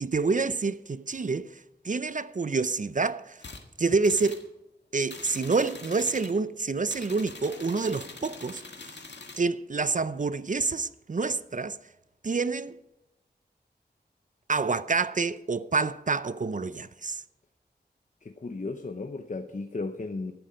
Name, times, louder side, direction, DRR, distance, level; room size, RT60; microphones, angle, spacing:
voice 1, 0.0-1.5 1.8-3.4 3.8-4.4 4.9-8.6 9.4-11.8 12.2-12.8 14.5-17.2, right 4 dB, 45° right, 0.5 m, -27 dB
sound 1, 3.4-3.6 4.0-4.5 5.1-6.4 6.8-9.5, left 3 dB, 85° left, 1.8 m, -44 dB
voice 2, 18.2-20.3, left 3 dB, 45° left, 0.9 m, -35 dB
13.5 x 11.5 x 5.2 m
wide cardioid pair, 85°, 18 cm